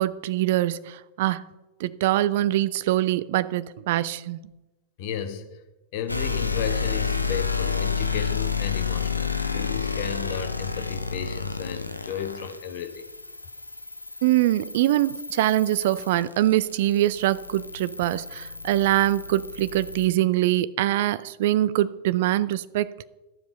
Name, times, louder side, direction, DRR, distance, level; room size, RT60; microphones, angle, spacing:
voice 1, 0.0-1.5 1.8-4.5 14.2-22.9, right 14 dB, 55° right, 0.4 m, -23 dB
voice 2, 5.0-5.6 5.9-13.1, left 8 dB, 50° left, 1.2 m, -34 dB
sound 1, 6.1-20.1, left 5 dB, 85° left, 0.7 m, -30 dB
12.0 x 7.5 x 5.3 m
figure-of-eight pair, 90°, 0 cm